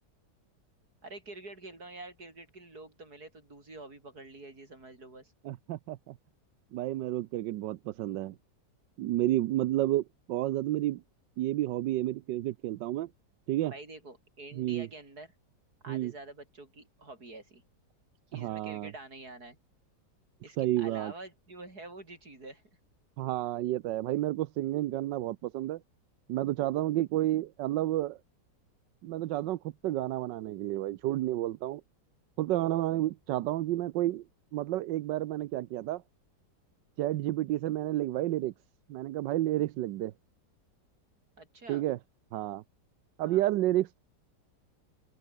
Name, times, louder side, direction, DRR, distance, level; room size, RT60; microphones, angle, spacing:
voice 1, 1.0-5.3 13.6-15.3 15.8-17.6 18.3-19.6 20.4-22.6 41.4-41.8 43.2-43.4, right 2 dB, 60° right, 6.6 m, -47 dB
voice 2, 5.4-6.1 6.7-8.4 9.0-11.0 11.4-13.1 13.5-13.7 14.5-14.9 15.9-16.1 18.3-18.9 20.6-21.1 23.2-25.8 26.3-28.2 29.0-31.8 32.4-34.2 34.5-36.0 37.0-38.5 38.9-40.1 41.7-42.0 42.3-42.6 43.2-44.0, right 15 dB, 90° right, 1.4 m, -30 dB
open air
omnidirectional pair, 1.9 m